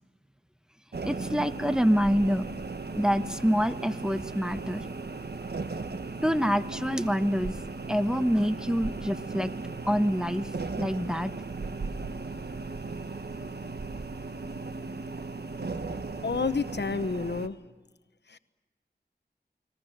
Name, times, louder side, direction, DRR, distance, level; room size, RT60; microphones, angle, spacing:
sound 1, 0.9-17.5, right 3 dB, 65° right, 1.4 m, -37 dB
voice 1, 1.0-2.4 2.9-4.9 6.2-7.5 7.9-9.5 9.8-10.5 10.8-11.3, equal, 5° right, 9 dB, 1.1 m, -26 dB
voice 2, 16.2-17.6 18.3-18.4, left 4 dB, 80° left, 12 dB, 1.0 m, -29 dB
29.5 x 21.0 x 6.6 m, 1.2 s
wide cardioid pair, 55°, 18 cm